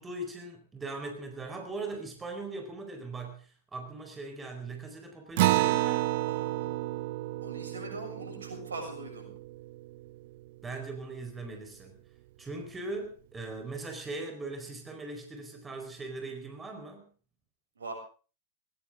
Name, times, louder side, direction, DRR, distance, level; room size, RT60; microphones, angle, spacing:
voice 1, 0.0-6.1 10.6-11.9 12.4-17.1, right 2 dB, 15° right, 4 dB, 4.6 m, -40 dB
Acoustic guitar, 5.4-10.3, right 17 dB, 55° right, 0.7 m, -30 dB
voice 2, 6.3-6.8 7.4-9.3 17.8-17.9, right 2 dB, 80° right, 3 dB, 7.1 m, -41 dB
19.5 x 19.0 x 3.8 m, 0.38 s
figure-of-eight pair, 95°, 0 cm